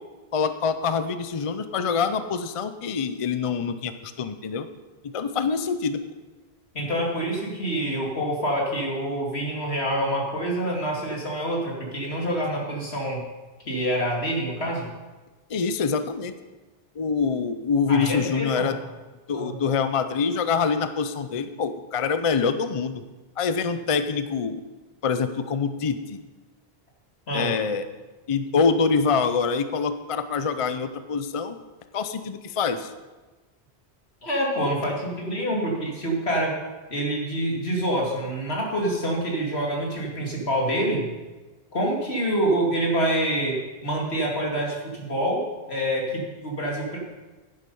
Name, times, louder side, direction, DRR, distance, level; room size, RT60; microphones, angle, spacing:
voice 1, 0.3-4.7 5.0-6.0 15.5-16.3 17.0-18.8 19.3-23.0 23.4-24.6 25.0-26.2 27.3-27.8 28.3-31.6 31.9-32.9, left 5 dB, 40° left, 10 dB, 0.6 m, -25 dB
voice 2, 6.7-13.2 13.7-14.9 17.9-18.7 19.3-19.6 27.3-27.5 34.2-36.5 36.9-41.1 41.7-45.4 45.7-47.0, right 1 dB, 85° left, -1 dB, 2.7 m, -26 dB
11.0 x 10.0 x 5.4 m, 1.2 s
omnidirectional pair, 1.1 m